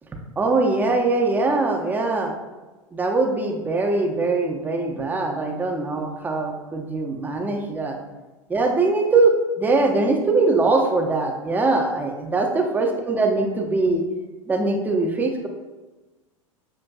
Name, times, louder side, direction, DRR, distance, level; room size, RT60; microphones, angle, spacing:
voice 1, 0.4-2.3 2.9-8.0 8.5-14.0 14.5-15.5, right 3 dB, 10° right, 2 dB, 0.4 m, -22 dB
5.7 x 2.5 x 2.3 m, 1.2 s
figure-of-eight pair, 85°, 17 cm